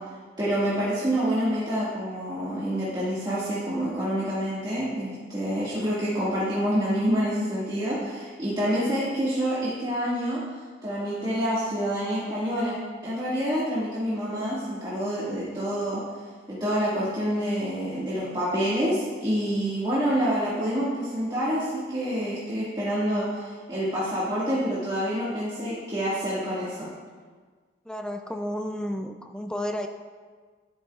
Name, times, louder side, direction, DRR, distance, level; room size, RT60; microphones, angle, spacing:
voice 1, 0.4-10.4 10.8-12.8 13.0-16.0 16.5-26.9, equal, 25° right, -10 dB, 1.9 m, -27 dB
voice 2, 27.9-29.9, equal, 5° left, 5 dB, 0.4 m, -32 dB
11.5 x 11.0 x 2.4 m, 1.5 s
head